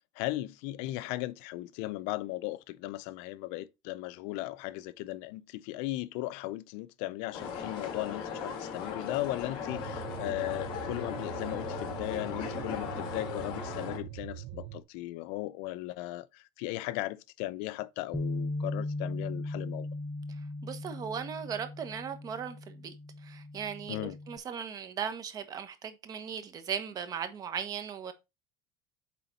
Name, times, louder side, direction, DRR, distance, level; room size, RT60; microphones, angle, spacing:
voice 1, 0.2-19.9 23.9-24.2, left 17 dB, 65° left, 0.4 m, -37 dB
sound 1, 7.3-14.0, left 6 dB, 50° left, 2.7 m, -38 dB
sound 2, 9.7-14.8, right 13 dB, 50° right, 0.6 m, -43 dB
Bass guitar, 18.1-24.4, left 2 dB, 5° left, 0.4 m, -38 dB
voice 2, 20.6-22.9 23.2-28.1, right 7 dB, 30° right, 1.1 m, -37 dB
8.4 x 3.8 x 4.0 m
cardioid pair, 140°, 12 cm